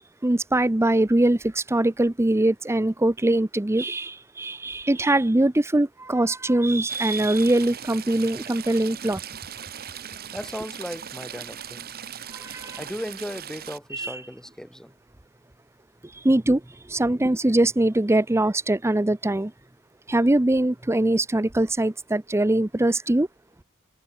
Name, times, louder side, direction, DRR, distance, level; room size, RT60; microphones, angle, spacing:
voice 1, 0.0-9.2 12.3-12.8 13.9-14.1 16.1-16.6 16.9-19.5 20.1-23.3, right 1 dB, 10° right, 0.6 m, -22 dB
Stream / Trickle dribble, 6.9-13.8, right 9 dB, 45° right, 1.2 m, -39 dB
voice 2, 10.3-11.9 12.8-14.9, equal, 5° left, 2.4 m, -36 dB
head